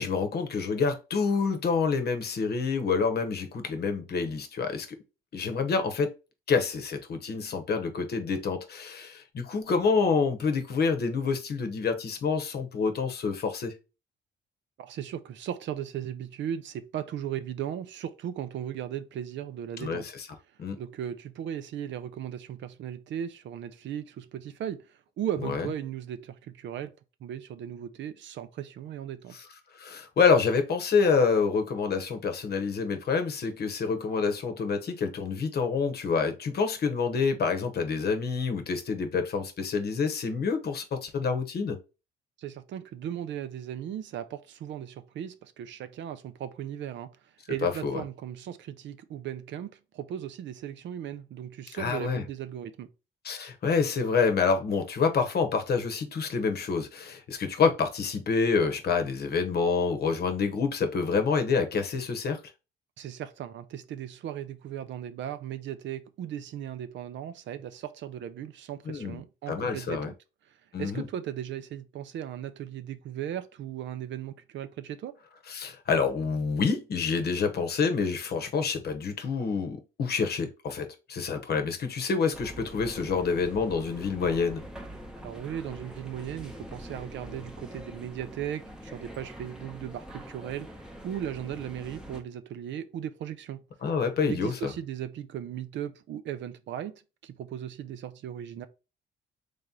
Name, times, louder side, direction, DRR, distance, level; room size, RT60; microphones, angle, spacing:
voice 1, 0.0-5.0 5.3-6.1 6.5-13.8 19.8-20.0 20.6-20.8 25.5-25.7 29.7-41.8 47.6-48.0 51.7-52.2 53.2-62.4 68.9-69.2 69.5-70.1 70.7-71.1 75.5-84.6 93.8-94.7, left 5 dB, 55° left, 0.9 m, -27 dB
voice 2, 14.8-20.0 20.8-24.9 25.2-26.9 27.2-29.4 42.4-47.1 47.5-52.9 63.0-70.2 70.8-75.2 85.2-93.6 94.2-96.9 97.2-98.7, right 10 dB, 65° right, 0.5 m, -37 dB
sound 1, 82.3-92.2, equal, 5° right, 0.8 m, -44 dB
3.3 x 2.8 x 3.6 m
cardioid pair, 90°, 20 cm